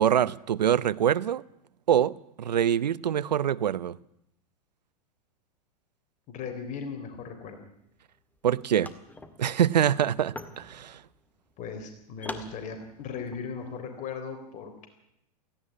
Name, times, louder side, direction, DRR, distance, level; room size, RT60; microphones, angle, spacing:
voice 1, 0.0-1.4 1.9-2.1 2.4-4.0 8.4-8.9 9.4-11.0, right 9 dB, 90° right, 0.8 m, -24 dB
voice 2, 6.3-7.6 11.6-14.9, left 5 dB, 35° left, 3.8 m, -38 dB
sound 1, 8.4-8.5 8.7-13.5, left 2 dB, 10° left, 2.0 m, -44 dB
17.5 x 16.0 x 9.8 m
hypercardioid pair, 115°, 21 cm